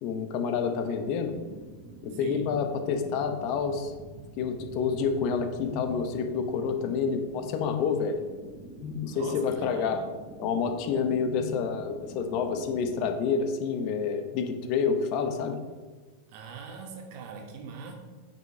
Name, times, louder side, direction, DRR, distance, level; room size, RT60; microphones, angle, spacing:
voice 1, 0.0-1.3 2.0-3.9 4.4-8.2 8.8-10.0 10.4-15.6, left 6 dB, 40° left, 7 dB, 0.9 m, -28 dB
sound 1, 0.5-13.2, right 3 dB, 20° right, 1.1 m, -47 dB
voice 2, 2.1-2.4 9.1-9.9 16.3-17.9, right 5 dB, 50° right, 2 dB, 1.3 m, -42 dB
9.0 x 5.7 x 3.8 m, 1.3 s
figure-of-eight pair, 90°, 0 cm